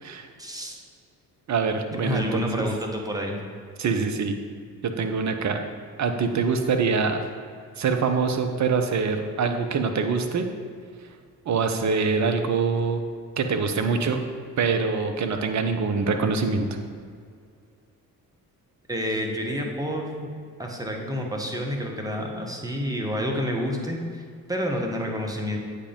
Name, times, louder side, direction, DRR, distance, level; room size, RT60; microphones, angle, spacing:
voice 1, 0.4-0.8 2.0-3.4 18.9-20.3 20.6-24.2 24.5-25.6, equal, 10° right, 0 dB, 1.3 m, -29 dB
voice 2, 1.5-2.6 3.8-4.3 4.8-5.6 6.0-7.2 7.8-10.5 11.5-13.0 13.4-14.2 14.6-16.7, right 5 dB, 35° right, 6 dB, 0.8 m, -24 dB
8.3 x 5.2 x 3.8 m, 2.1 s
figure-of-eight pair, 40°, 48 cm